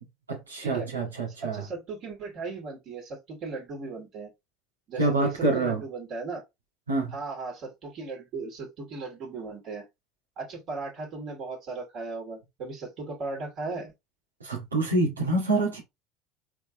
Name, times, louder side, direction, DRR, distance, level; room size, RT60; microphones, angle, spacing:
voice 1, 0.3-1.7 5.0-5.8 6.9-7.2 14.4-15.8, right 2 dB, 85° right, 1.9 m, -26 dB
voice 2, 1.4-4.3 4.9-6.4 7.1-9.8 10.4-13.9, right 3 dB, 50° right, 2.7 m, -37 dB
4.4 x 3.9 x 3.1 m
figure-of-eight pair, 70°, 0 cm